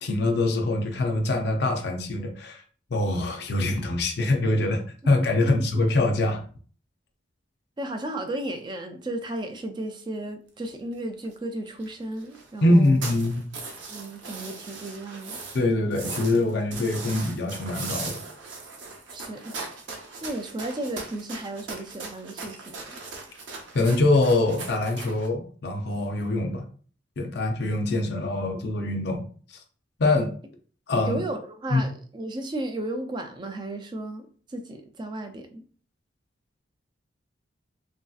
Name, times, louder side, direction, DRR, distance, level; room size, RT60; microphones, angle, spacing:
voice 1, 0.0-2.6 2.9-6.4 12.6-13.5 15.5-18.2 23.7-26.6 27.2-29.2 29.5-29.6 30.0-30.3 30.9-31.2 31.7-31.8, left 2 dB, 55° left, 0.5 m, -24 dB
voice 2, 7.8-13.0 13.9-15.4 19.1-19.6 20.2-22.8 31.0-35.6, right 1 dB, 25° right, 0.3 m, -34 dB
sound 1, 10.6-10.7 10.9-11.0 11.2-11.3 11.7-11.9 12.2-15.6 15.9-25.3, right 4 dB, 70° right, 0.7 m, -39 dB
3.1 x 2.6 x 2.3 m
head